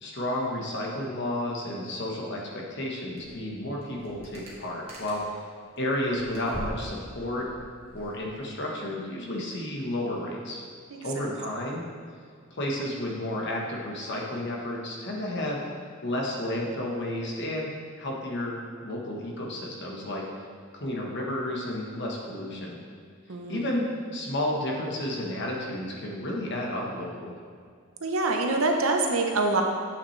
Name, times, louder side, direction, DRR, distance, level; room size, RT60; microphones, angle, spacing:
voice 1, 0.0-5.4 5.8-7.5 7.9-10.6 11.0-11.8 12.5-15.6 16.0-17.7 18.0-20.2 20.7-22.8 23.5-27.4, left 1 dB, 60° left, -2 dB, 1.3 m, -32 dB
sound 1, 3.2-3.5 3.7-5.4 5.8-8.4, equal, 30° right, 1.6 m, -42 dB
voice 2, 10.9-11.3 23.3-23.7 28.0-29.6, right 3 dB, 85° right, 3 dB, 0.8 m, -26 dB
8.4 x 5.9 x 3.3 m, 2.1 s
head